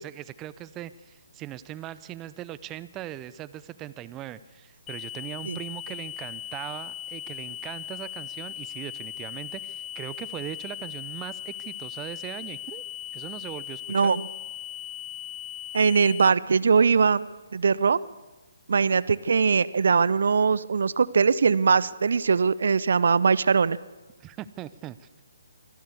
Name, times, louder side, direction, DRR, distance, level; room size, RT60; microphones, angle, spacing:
voice 1, 0.0-12.8 13.1-14.1 24.2-25.3, right 13 dB, 20° right, 16 dB, 0.6 m, -40 dB
sound 1, 4.9-16.3, left 11 dB, 15° left, 0.8 m, -38 dB
voice 2, 13.9-14.2 15.7-17.3 17.5-18.0 18.7-23.8, right 5 dB, 60° right, 19 dB, 0.6 m, -21 dB
24.5 x 15.0 x 8.4 m, 1.2 s
figure-of-eight pair, 135°, 0 cm